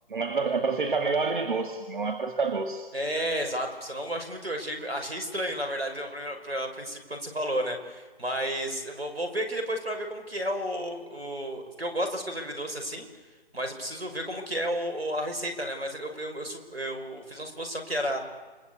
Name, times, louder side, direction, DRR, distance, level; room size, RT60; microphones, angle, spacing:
voice 1, 0.1-2.9, right 4 dB, 55° right, 5 dB, 2.6 m, -28 dB
voice 2, 2.9-13.1 13.5-18.2, equal, 85° right, 5 dB, 6.1 m, -32 dB
28.5 x 24.0 x 8.5 m, 1.3 s
figure-of-eight pair, 150°, 30 cm